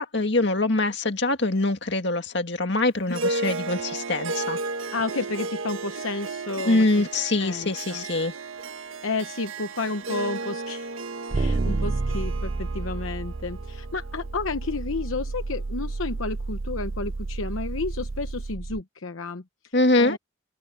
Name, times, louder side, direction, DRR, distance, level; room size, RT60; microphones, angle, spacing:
voice 1, 0.0-4.6 6.7-8.3 19.7-20.2, left 2 dB, 55° left, 2.1 m, -24 dB
Harp, 3.1-15.7, right 3 dB, 80° right, 1.6 m, -34 dB
voice 2, 4.9-7.1 7.4-8.0 8.8-10.9 11.3-20.2, left 3 dB, 80° left, 0.9 m, -32 dB
sound 1, 11.3-18.8, right 3 dB, 35° right, 0.4 m, -30 dB
open air
head